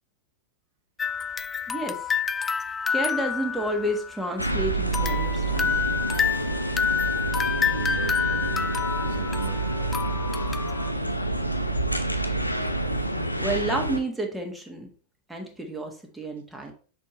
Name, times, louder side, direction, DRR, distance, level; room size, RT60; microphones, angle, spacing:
sound 1, 1.0-4.5 4.9-10.9, left 7 dB, 15° left, 0.3 m, -28 dB
voice 1, 1.7-2.0 2.9-6.0 13.3-14.9 15.3-16.7, right 1 dB, 5° right, 2 dB, 1.5 m, -30 dB
sound 2, 4.4-14.0, right 2 dB, 90° left, 0.7 m, -28 dB
voice 2, 7.6-9.7, right 8 dB, 60° right, 7 dB, 0.6 m, -39 dB
6.2 x 4.5 x 4.1 m, 0.41 s
figure-of-eight pair, 90°, 0 cm